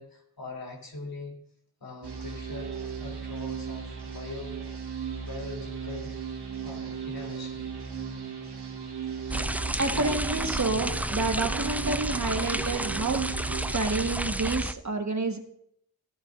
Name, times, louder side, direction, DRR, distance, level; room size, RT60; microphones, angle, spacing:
voice 1, 0.0-1.4 1.8-4.6 5.2-6.1 6.6-7.7, left 2 dB, 60° left, 0 dB, 3.3 m, -42 dB
sound 1, 2.0-13.7, right 6 dB, 80° right, 2.1 m, -36 dB
sound 2, 9.3-14.7, right 1 dB, 5° right, 0.4 m, -31 dB
voice 2, 9.8-13.3 13.7-15.4, right 3 dB, 45° right, 5 dB, 1.5 m, -29 dB
16.5 x 11.0 x 2.6 m, 0.71 s
cardioid pair, 60°, 39 cm